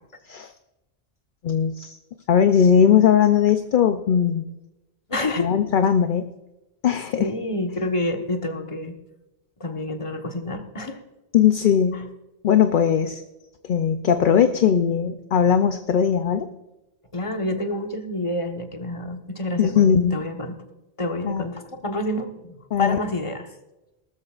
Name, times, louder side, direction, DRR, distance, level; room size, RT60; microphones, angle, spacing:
voice 1, 1.4-2.0 2.3-4.4 5.4-6.3 6.8-7.3 11.3-12.1 12.4-13.2 13.7-16.5 19.6-20.2 21.2-21.4 22.7-23.0, left 8 dB, 60° left, 8 dB, 0.7 m, -19 dB
voice 2, 5.1-5.5 7.2-9.0 9.6-11.0 11.9-12.0 17.1-20.6 21.0-23.5, left 1 dB, 30° left, 4 dB, 1.3 m, -28 dB
19.0 x 13.0 x 2.4 m, 0.97 s
omnidirectional pair, 1.0 m